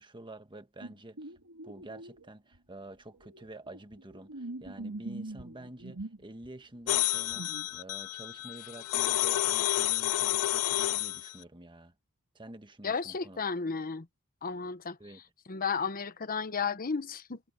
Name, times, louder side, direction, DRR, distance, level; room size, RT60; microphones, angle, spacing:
voice 1, 0.0-1.3 1.6-11.9 12.3-13.4 15.0-15.2, right 1 dB, 20° right, 1.5 m, -48 dB
sound 1, 0.8-2.2 2.5-2.6 3.1-6.5 7.0-7.8, right 2 dB, 75° right, 2.9 m, -43 dB
sound 2, 6.9-11.3, left 15 dB, 75° left, 0.4 m, -30 dB
voice 2, 12.8-14.1 14.4-15.0 15.5-17.4, left 5 dB, 40° left, 1.0 m, -33 dB
head